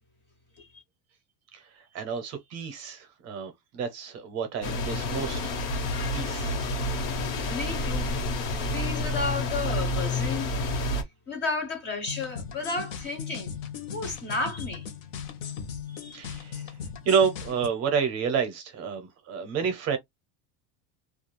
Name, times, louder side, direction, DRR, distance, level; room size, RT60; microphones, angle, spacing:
voice 1, 1.5-5.4 6.1-6.6 16.1-16.7 17.1-20.0, right 6 dB, 35° right, 0.6 m, -29 dB
sound 1, 4.6-11.0, left 2 dB, 80° left, 1.1 m, -29 dB
voice 2, 7.5-8.2 8.7-10.5 11.3-13.5 13.9-14.9 15.9-16.2, left 3 dB, 25° left, 0.5 m, -32 dB
sound 2, 12.1-17.7, left 7 dB, 60° left, 0.8 m, -38 dB
2.4 x 2.2 x 2.9 m
cardioid pair, 165°, 46 cm